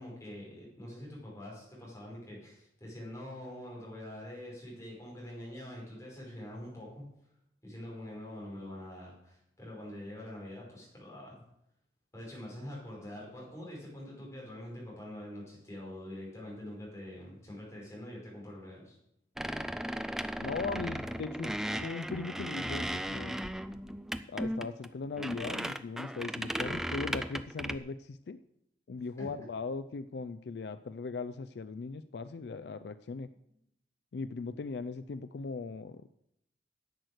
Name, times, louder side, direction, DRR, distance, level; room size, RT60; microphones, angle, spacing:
voice 1, 0.0-7.0 7.6-11.4 12.1-19.0 29.0-29.3, left 1 dB, 15° left, -4 dB, 5.2 m, -45 dB
sound 1, 19.4-27.8, equal, 5° right, 0.3 m, -36 dB
voice 2, 20.4-21.6 21.8-23.4 24.3-28.4 28.9-33.3 34.1-36.0, left 4 dB, 65° left, 12 dB, 0.4 m, -39 dB
10.5 x 7.9 x 6.4 m, 0.78 s
head